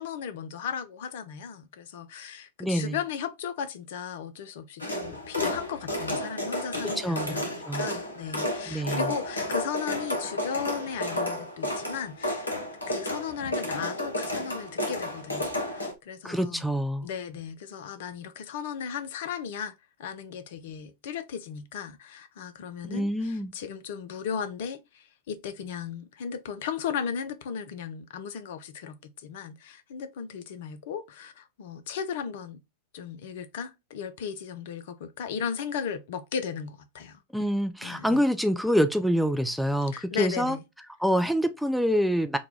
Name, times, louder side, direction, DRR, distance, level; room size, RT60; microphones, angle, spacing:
voice 1, 0.0-12.5 12.9-16.6 17.0-19.7 20.0-32.6 32.9-37.2 37.8-38.2 39.9-40.6, left 7 dB, 55° left, 0.5 m, -36 dB
voice 2, 2.6-3.0 6.8-7.3 7.7-7.9 8.7-9.1 16.2-17.1 22.9-23.5 37.3-40.6 41.0-42.4, equal, ahead, 0.3 m, -26 dB
sound 1, 4.8-15.9, left 1 dB, 80° left, 0.8 m, -32 dB
3.1 x 2.3 x 3.7 m
figure-of-eight pair, 90°, 0 cm